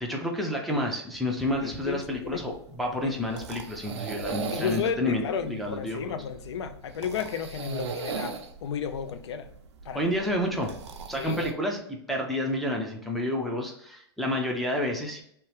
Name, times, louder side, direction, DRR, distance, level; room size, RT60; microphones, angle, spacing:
voice 1, 0.0-6.2 9.9-10.7 11.1-15.2, left 1 dB, ahead, 0.4 m, -30 dB
sound 1, 1.4-11.5, right 5 dB, 80° right, 0.5 m, -39 dB
voice 2, 1.6-2.4 3.0-3.1 4.5-9.5 9.9-10.0 11.2-11.4, left 7 dB, 80° left, 0.4 m, -33 dB
2.9 x 2.3 x 3.2 m
hypercardioid pair, 140°, 14 cm